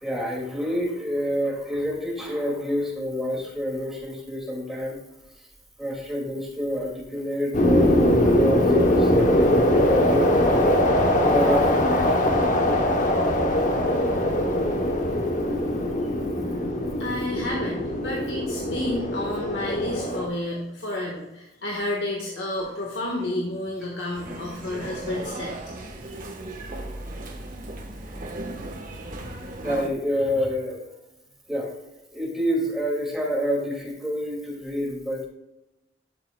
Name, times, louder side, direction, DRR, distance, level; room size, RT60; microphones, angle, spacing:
voice 1, 0.0-5.0 5.8-12.7 13.5-13.6 25.9-26.2 29.6-30.8 31.5-31.7 32.1-35.3, equal, ahead, -3 dB, 2.1 m, -28 dB
sound 1, 7.5-20.3, left 1 dB, 45° left, 0.9 m, -22 dB
voice 2, 17.0-25.5, left 1 dB, 70° left, -2 dB, 1.4 m, -30 dB
sound 2, 24.1-29.9, right 1 dB, 50° right, 1.1 m, -36 dB
12.0 x 6.8 x 2.2 m, 0.92 s
head